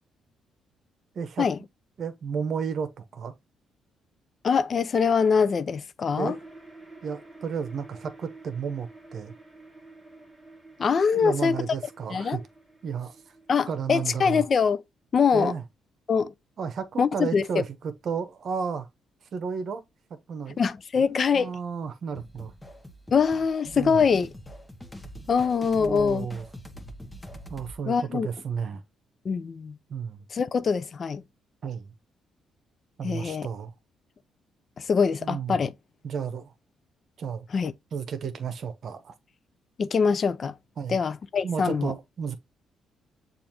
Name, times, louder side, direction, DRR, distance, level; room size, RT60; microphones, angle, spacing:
voice 1, 1.1-1.5 2.0-3.3 6.1-6.4 7.0-9.3 11.1-12.4 12.8-13.2 13.7-14.5 15.3-15.6 16.6-18.9 19.3-19.8 20.1-20.6 21.3-22.5 23.7-24.0 25.8-26.4 27.5-28.8 29.9-30.3 31.6-31.9 33.0-33.7 35.2-35.6 36.0-36.5 37.2-37.4 37.9-39.1 40.8-41.0 41.4-42.3, right 6 dB, 55° right, 0.9 m, -32 dB
voice 2, 4.4-6.4 10.8-11.6 12.1-12.4 13.5-14.8 15.1-15.5 16.1-16.3 17.0-17.4 20.6-21.5 23.1-24.3 25.3-26.3 27.9-28.3 29.2-29.8 30.3-31.2 33.0-33.5 34.8-35.7 37.5-37.7 39.8-40.6 40.9-41.9, left 6 dB, 45° left, 0.5 m, -23 dB
sound 1, 6.2-14.5, right 2 dB, 10° right, 1.4 m, -50 dB
sound 2, 22.2-27.8, equal, 10° left, 1.0 m, -44 dB
6.9 x 2.6 x 2.9 m
cardioid pair, 90°, 0 cm